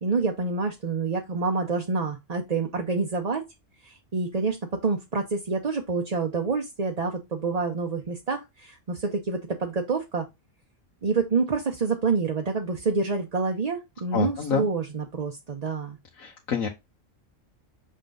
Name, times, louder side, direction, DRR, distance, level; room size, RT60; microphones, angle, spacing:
voice 1, 0.0-3.4 3.8-10.3 11.0-16.0, right 4 dB, 35° right, 0.8 m, -27 dB
voice 2, 14.1-14.7 16.2-16.7, left 6 dB, 85° left, 1.5 m, -27 dB
6.5 x 3.7 x 3.8 m
omnidirectional pair, 1.4 m